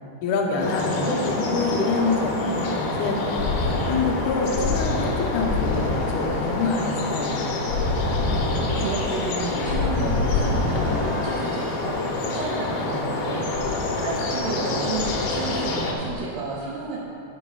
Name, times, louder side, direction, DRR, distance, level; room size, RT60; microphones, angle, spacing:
voice 1, 0.2-7.6, left 3 dB, 70° left, 0 dB, 2.1 m, -26 dB
sound 1, 0.6-15.9, left 3 dB, 85° left, 2.7 m, -27 dB
voice 2, 0.8-1.3 8.4-17.0, right 3 dB, 80° right, -5 dB, 2.6 m, -32 dB
sound 2, 3.1-11.6 13.5-14.7 15.0-16.1, left 3 dB, 50° left, 0.8 m, -27 dB
12.0 x 9.1 x 2.3 m, 2.7 s
omnidirectional pair, 4.2 m